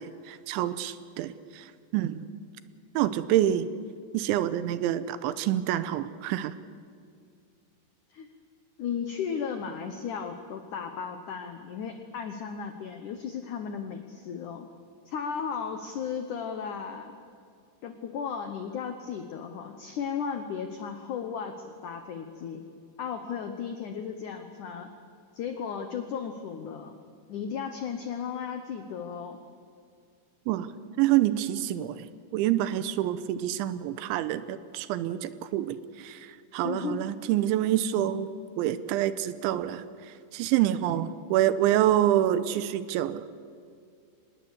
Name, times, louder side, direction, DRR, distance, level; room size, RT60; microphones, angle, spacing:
voice 1, 0.0-2.3 3.0-3.7 4.1-6.5 30.5-30.7 31.0-32.1 32.3-38.3 38.6-43.2, right 12 dB, 85° right, 14 dB, 3.2 m, -27 dB
voice 2, 8.8-14.7 15.1-17.1 17.8-22.6 23.0-24.9 25.3-27.0 27.3-29.4 36.6-37.0, left 7 dB, 85° left, 7 dB, 1.7 m, -35 dB
25.0 x 20.0 x 8.4 m, 2.4 s
omnidirectional pair, 5.4 m